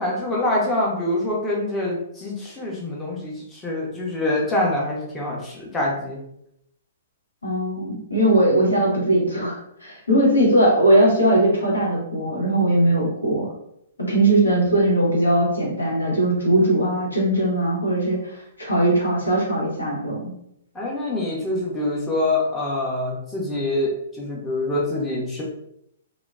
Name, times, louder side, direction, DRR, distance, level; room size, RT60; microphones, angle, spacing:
voice 1, 0.0-6.2 20.7-23.9 24.2-25.4, left 1 dB, 10° left, -4 dB, 0.6 m, -25 dB
voice 2, 7.4-13.5 14.0-20.3, right 1 dB, 80° left, -2 dB, 0.9 m, -20 dB
2.8 x 2.0 x 2.4 m, 0.76 s
figure-of-eight pair, 115°, 0 cm